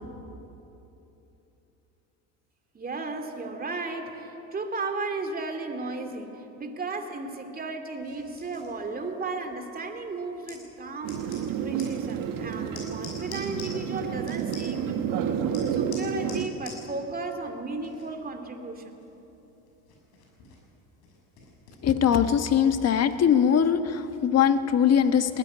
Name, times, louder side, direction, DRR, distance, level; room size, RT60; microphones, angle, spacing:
voice 1, 2.7-15.4 15.7-19.0, right 3 dB, 25° right, 5 dB, 2.5 m, -35 dB
sound 1, 8.0-23.1, left 4 dB, 75° left, 6.7 m, -50 dB
sound 2, 11.0-16.5, right 8 dB, 60° right, 1.7 m, -30 dB
voice 2, 21.8-25.4, left 8 dB, 40° left, 9 dB, 1.4 m, -21 dB
19.5 x 14.0 x 9.8 m, 3.0 s
supercardioid pair, 100°, 37 cm